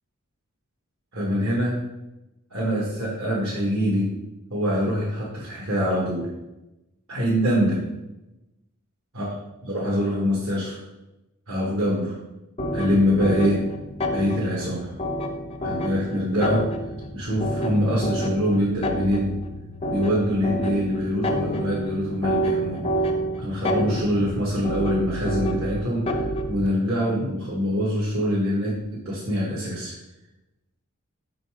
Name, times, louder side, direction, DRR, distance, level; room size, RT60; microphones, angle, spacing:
voice 1, 1.1-1.9 2.5-4.2 4.5-6.3 7.1-7.9 9.1-9.3 9.6-10.8 11.5-12.2 12.7-13.7 14.1-14.9 15.6-16.7 17.1-19.4 19.9-22.9 23.4-29.9, equal, 60° right, -5 dB, 1.4 m, -24 dB
sound 1, 12.6-26.7, equal, 25° left, 0.5 m, -28 dB
5.5 x 4.0 x 4.8 m, 0.96 s
head